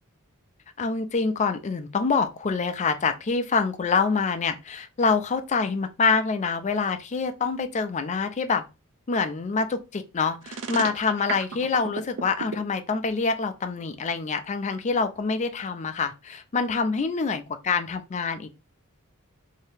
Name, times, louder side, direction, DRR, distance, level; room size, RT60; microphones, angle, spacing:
voice 1, 0.8-8.6 9.1-18.5, left 4 dB, 30° left, 0.4 m, -26 dB
sound 1, 10.4-12.6, right 5 dB, 55° right, 0.4 m, -33 dB
2.7 x 2.7 x 3.4 m
head